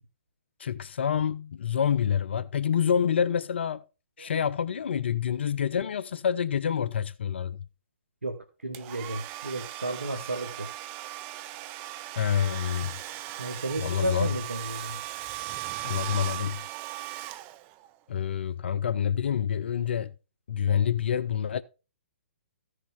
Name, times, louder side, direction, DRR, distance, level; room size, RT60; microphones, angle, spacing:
voice 1, 0.6-3.8 4.2-7.6 12.2-12.9 13.8-14.3 15.8-16.6 18.1-20.1 20.5-21.6, left 8 dB, 65° left, 0.5 m, -27 dB
voice 2, 8.2-10.7 13.4-15.0, right 2 dB, 90° right, 1.0 m, -33 dB
Domestic sounds home sounds, 8.7-17.9, right 15 dB, 30° right, 0.6 m, -38 dB
14.5 x 6.5 x 3.5 m
figure-of-eight pair, 125°, 7 cm